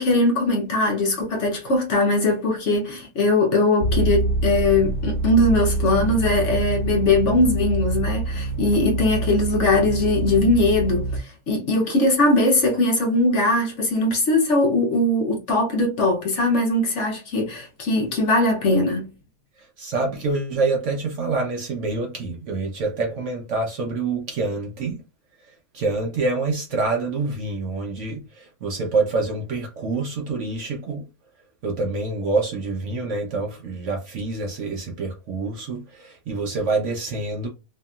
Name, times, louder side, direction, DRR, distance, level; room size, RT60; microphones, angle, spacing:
voice 1, 0.0-19.1, left 2 dB, 55° left, 1.0 m, -20 dB
sound 1, 3.8-11.2, right 2 dB, 20° right, 1.2 m, -25 dB
voice 2, 19.8-25.0 25.7-31.1 31.6-37.5, right 3 dB, 65° right, 0.8 m, -26 dB
2.8 x 2.6 x 2.3 m
omnidirectional pair, 1.6 m